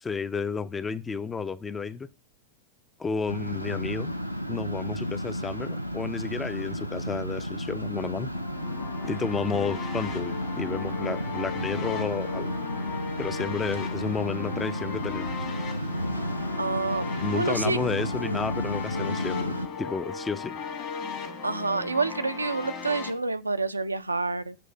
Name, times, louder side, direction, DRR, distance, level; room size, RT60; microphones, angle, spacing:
voice 1, 0.0-2.1 3.0-4.1 4.5-8.3 9.0-12.5 13.2-15.3 17.2-20.6, left 5 dB, 15° left, 0.4 m, -32 dB
sound 1, 3.3-19.7, equal, 90° left, 0.4 m, -32 dB
sound 2, 8.3-23.1, left 6 dB, 40° left, 1.3 m, -37 dB
voice 2, 16.6-17.0 17.3-17.8 21.4-24.6, right 3 dB, 80° right, 0.4 m, -28 dB
7.6 x 3.2 x 5.3 m
figure-of-eight pair, 90°, 0 cm